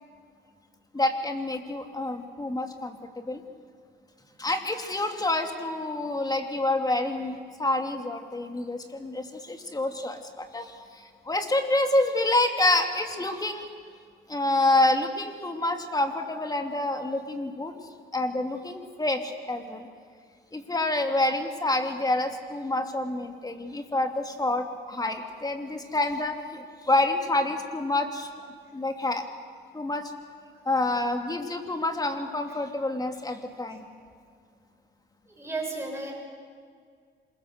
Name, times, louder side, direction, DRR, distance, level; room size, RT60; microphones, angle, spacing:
voice 1, 0.9-3.4 4.4-10.7 11.3-13.6 14.3-17.7 18.1-19.9 20.5-28.3 28.7-29.2 29.7-30.1 30.7-33.9, left 2 dB, 20° left, 5 dB, 2.6 m, -27 dB
voice 2, 35.4-36.1, right 3 dB, 15° right, 0 dB, 7.1 m, -33 dB
26.5 x 21.5 x 6.7 m, 2.1 s
cardioid pair, 90°, 20 cm